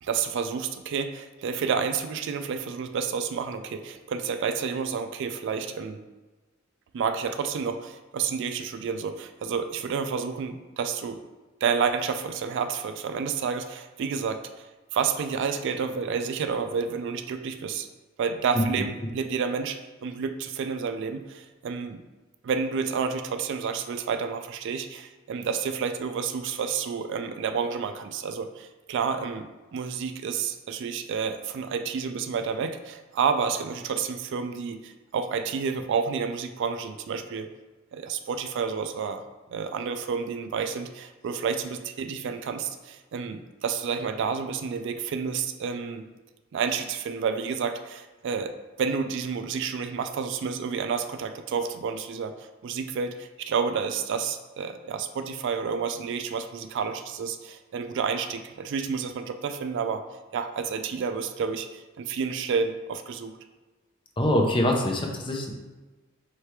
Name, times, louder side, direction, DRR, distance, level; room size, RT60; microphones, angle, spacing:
voice 1, 0.0-6.0 6.9-11.2 11.6-14.7 14.9-17.9 18.2-22.0 22.4-37.5 37.9-39.2 39.5-46.1 46.5-48.5 48.8-60.0 60.3-63.3, right 6 dB, 60° right, 8 dB, 0.3 m, -30 dB
voice 2, 64.2-65.5, left 1 dB, 25° left, 1 dB, 0.6 m, -24 dB
3.3 x 3.1 x 4.6 m, 1.2 s
head